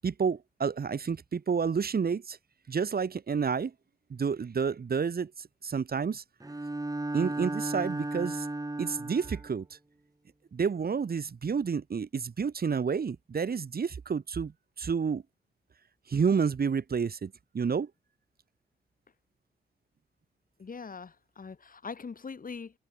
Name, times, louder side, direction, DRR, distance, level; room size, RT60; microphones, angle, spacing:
voice 1, 0.0-2.4 2.7-3.7 4.1-6.2 7.1-8.5 8.8-9.7 10.5-15.2 16.1-17.9, right 6 dB, 55° right, 7.5 m, -30 dB
Bowed string instrument, 6.4-9.5, right 2 dB, 20° right, 4.6 m, -35 dB
voice 2, 20.6-22.7, left 5 dB, 50° left, 6.7 m, -42 dB
supercardioid pair, 45°, 18 cm